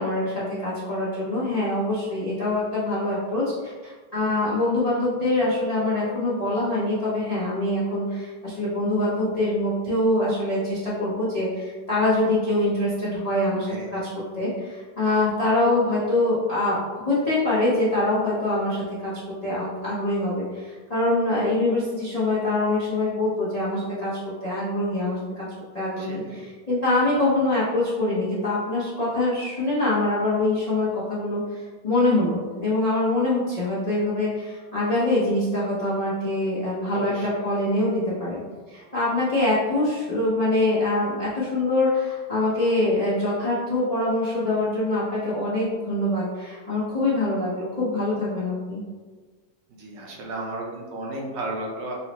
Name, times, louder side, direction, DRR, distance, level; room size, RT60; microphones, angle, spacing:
voice 1, 0.0-14.0 14.4-16.8 17.0-24.1 24.4-25.5 25.7-38.4 38.7-48.8, left 2 dB, 50° left, -10 dB, 0.4 m, -24 dB
voice 2, 26.0-26.4 36.9-37.3 49.8-51.9, right 2 dB, 70° right, -1 dB, 1.2 m, -33 dB
5.5 x 2.1 x 2.9 m, 1.4 s
omnidirectional pair, 2.2 m